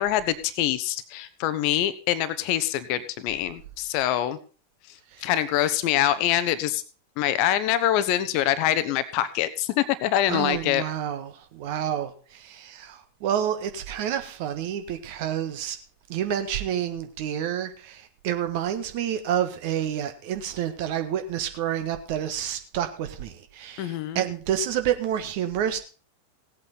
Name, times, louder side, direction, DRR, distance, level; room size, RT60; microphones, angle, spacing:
voice 1, 0.0-4.4 5.2-6.8 7.2-10.8 23.8-24.2, left 12 dB, 45° left, 14 dB, 0.9 m, -25 dB
voice 2, 10.3-15.8 16.1-25.8, right 10 dB, 50° right, 8 dB, 1.5 m, -29 dB
17.0 x 8.5 x 4.1 m, 0.37 s
figure-of-eight pair, 90°, 0 cm